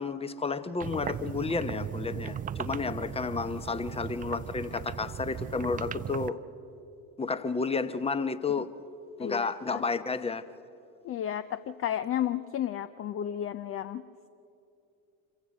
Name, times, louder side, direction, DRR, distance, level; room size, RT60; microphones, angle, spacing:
voice 1, 0.0-6.4 7.2-8.7 9.2-10.4, left 4 dB, 15° left, 13 dB, 0.9 m, -31 dB
sound 1, 0.8-6.3, right 9 dB, 20° right, 0.4 m, -37 dB
voice 2, 9.2-9.8 11.0-14.0, left 10 dB, 30° left, 13 dB, 0.5 m, -32 dB
26.0 x 15.5 x 6.5 m, 2.8 s
figure-of-eight pair, 60°, 44 cm